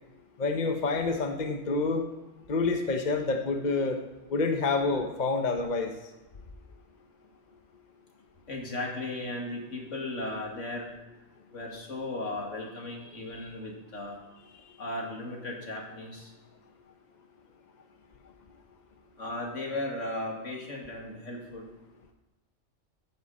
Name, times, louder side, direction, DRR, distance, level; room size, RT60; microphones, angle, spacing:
voice 1, 0.4-2.1 2.5-4.0 4.3-5.9, left 3 dB, 40° left, 5 dB, 1.0 m, -27 dB
voice 2, 8.5-10.9 11.5-14.2 14.8-16.3 19.2-21.7, left 2 dB, 70° left, -1 dB, 2.7 m, -36 dB
15.0 x 10.0 x 4.2 m, 1.1 s
omnidirectional pair, 1.3 m